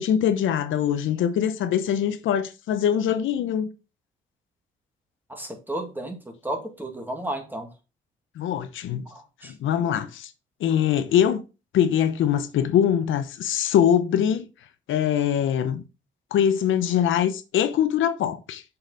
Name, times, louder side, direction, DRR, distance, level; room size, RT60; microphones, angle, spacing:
voice 1, 0.0-3.7 8.4-9.0 9.4-10.3 10.6-11.4 11.7-14.5 14.9-15.8 16.3-18.6, left 9 dB, 80° left, 0.9 m, -23 dB
voice 2, 5.3-6.2 6.4-7.7 9.1-9.5, right 1 dB, 10° right, 2.0 m, -33 dB
6.6 x 5.8 x 4.0 m
cardioid pair, 90°, 20 cm